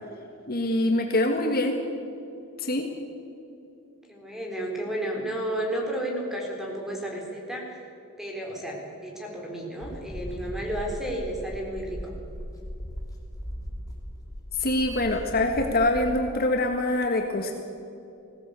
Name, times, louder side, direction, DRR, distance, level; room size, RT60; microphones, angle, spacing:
voice 1, 0.5-1.8 2.6-2.9 14.5-17.5, left 1 dB, 45° left, 3 dB, 1.6 m, -24 dB
voice 2, 4.1-7.8 8.2-12.1, right 1 dB, ahead, 0 dB, 3.9 m, -32 dB
sound 1, 9.8-16.2, equal, 15° left, 3.5 m, -38 dB
20.5 x 16.5 x 8.2 m, 2.7 s
head